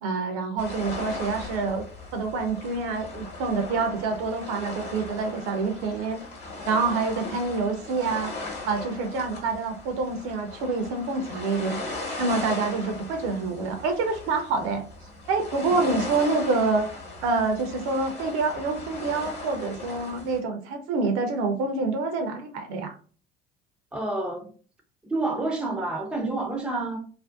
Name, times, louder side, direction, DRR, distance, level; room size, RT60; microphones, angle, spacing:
voice 1, 0.0-1.8 2.1-6.2 6.7-8.3 8.7-11.8 12.2-14.8 15.3-16.9 17.2-22.9, right 3 dB, 60° right, 0.6 m, -27 dB
sound 1, 0.6-20.4, left 3 dB, 35° left, 1.0 m, -38 dB
voice 2, 23.9-24.5 25.1-27.0, right 2 dB, 5° right, 0.5 m, -28 dB
2.5 x 2.1 x 2.3 m
figure-of-eight pair, 60°, 30 cm